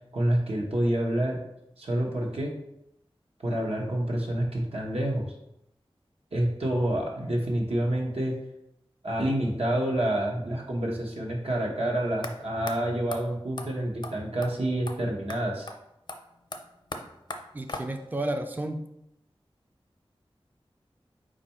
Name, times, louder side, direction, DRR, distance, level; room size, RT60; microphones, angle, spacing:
voice 1, 0.1-1.4 1.8-2.6 3.4-5.2 6.3-8.3 9.0-15.7, right 1 dB, 85° right, -2 dB, 1.0 m, -28 dB
sound 1, 12.2-12.3 12.7-12.8 13.1-13.2 13.6-13.7 14.0-14.1 14.4-14.5 14.9-15.0 15.3-15.4 15.7-15.8 16.1-18.2, left 2 dB, 50° left, 0.5 m, -39 dB
voice 2, 17.5-18.8, right 1 dB, 20° right, 6 dB, 0.4 m, -31 dB
4.4 x 2.5 x 4.2 m, 0.82 s
wide cardioid pair, 50°, 10 cm